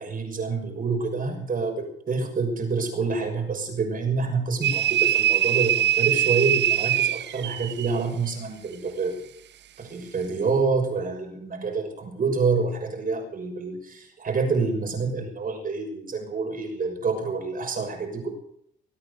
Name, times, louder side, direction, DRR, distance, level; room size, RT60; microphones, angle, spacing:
voice 1, 0.0-9.2 9.8-18.3, right 4 dB, 45° right, 4 dB, 6.2 m, -27 dB
sound 1, 4.6-8.0, right 11 dB, 60° right, 0.6 m, -22 dB
22.0 x 9.2 x 6.8 m, 0.69 s
cardioid pair, 90°, 20 cm